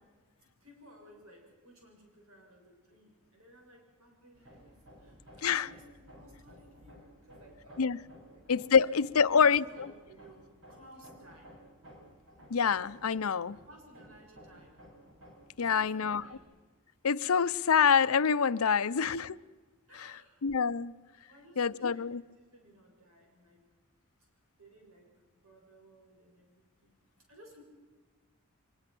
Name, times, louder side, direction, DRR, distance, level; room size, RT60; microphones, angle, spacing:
voice 1, 0.6-7.9 8.2-8.4 9.1-11.6 13.7-14.8 15.7-16.5 18.8-18.9 19.9-20.5 21.3-22.1 22.3-23.6 24.6-25.1 25.4-27.0 27.3-27.6, equal, 90° right, 7.4 m, -57 dB
Hammer, 4.3-16.4, equal, 65° right, 6.1 m, -55 dB
voice 2, 8.5-9.6 12.5-13.6 15.6-16.2 17.0-19.4 20.0-20.1 20.4-20.9 21.6-22.2, left 6 dB, 85° left, 0.6 m, -26 dB
24.0 x 21.5 x 6.1 m
head